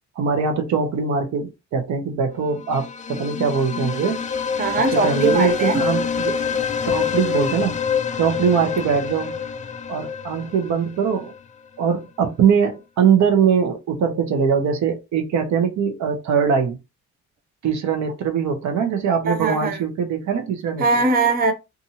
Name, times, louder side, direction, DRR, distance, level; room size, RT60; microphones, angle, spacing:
voice 1, 0.2-4.2 4.9-6.4 6.8-7.8 8.2-9.4 9.9-11.3 11.8-16.8 17.6-20.9, right 6 dB, 70° right, 0.8 m, -22 dB
sound 1, 2.6-11.4, left 6 dB, 25° left, 0.3 m, -26 dB
voice 2, 4.6-5.8 19.3-19.8 20.8-21.5, right 4 dB, 30° right, 0.6 m, -20 dB
2.7 x 2.5 x 2.7 m
cardioid pair, 90°, 30 cm